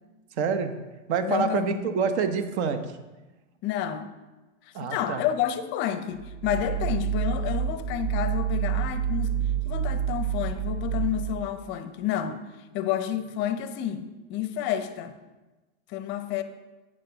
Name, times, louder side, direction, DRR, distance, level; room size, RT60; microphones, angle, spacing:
voice 1, 0.4-0.7 1.1-3.0 4.7-5.2, right 6 dB, 60° right, 8 dB, 1.0 m, -27 dB
voice 2, 1.2-1.9 3.6-4.1 4.8-9.3 9.7-12.4 12.7-15.2 15.9-16.4, left 10 dB, 30° left, 10 dB, 0.6 m, -30 dB
sound 1, 6.1-11.6, right 8 dB, 85° right, 1.0 m, -28 dB
8.7 x 6.6 x 3.9 m, 1.1 s
supercardioid pair, 135°, 38 cm